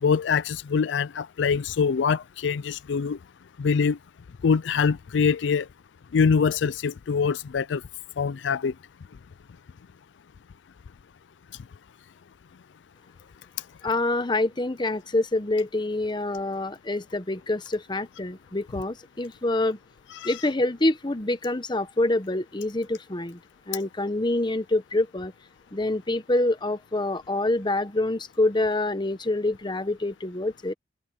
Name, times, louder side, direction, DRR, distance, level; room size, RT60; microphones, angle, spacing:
voice 1, 0.0-3.2 3.6-4.0 4.4-5.7 6.1-7.8 8.2-8.7 20.1-20.3, left 6 dB, 75° left, 0.4 m, -24 dB
voice 2, 13.8-19.8 20.2-23.4 23.7-25.3 25.7-30.7, left 2 dB, 25° left, 1.0 m, -26 dB
open air
head